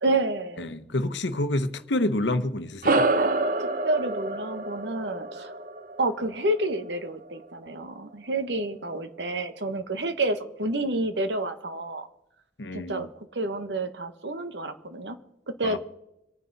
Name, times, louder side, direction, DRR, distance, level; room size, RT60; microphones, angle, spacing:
voice 1, 0.0-0.7 3.6-5.5 6.0-12.1 12.7-15.2 15.6-15.8, right 2 dB, 85° right, 1.3 m, -29 dB
voice 2, 0.6-3.1 12.6-13.1 15.6-15.8, left 1 dB, 90° left, 1.0 m, -28 dB
sound 1, 2.8-7.6, right 2 dB, 50° right, 0.8 m, -28 dB
25.5 x 9.5 x 4.1 m
head